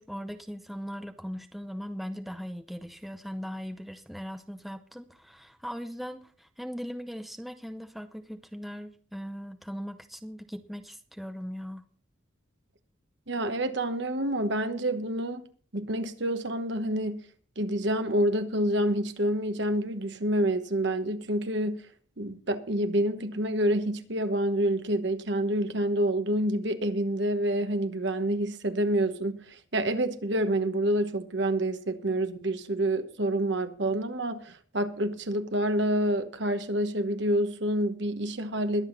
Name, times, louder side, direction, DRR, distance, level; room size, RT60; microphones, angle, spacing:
voice 1, 0.0-11.8, equal, ahead, 0.6 m, -39 dB
voice 2, 13.3-15.4 15.7-17.2 17.6-21.8 22.2-38.9, right 1 dB, 60° right, 1.2 m, -28 dB
21.5 x 7.9 x 4.0 m
head